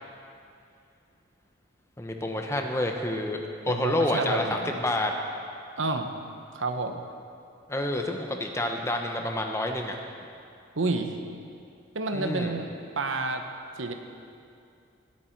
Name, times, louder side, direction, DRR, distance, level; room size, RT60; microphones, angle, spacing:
voice 1, 2.0-3.4 3.6-5.1 7.7-10.0 12.1-12.5, left 1 dB, 15° left, 3 dB, 0.9 m, -28 dB
voice 2, 3.7-4.7 5.8-6.1 6.5-7.0 10.8-11.2 11.9-12.7 13.0-13.4 13.8-13.9, right 3 dB, 80° right, 6 dB, 0.9 m, -29 dB
19.5 x 8.6 x 4.5 m, 2.5 s
head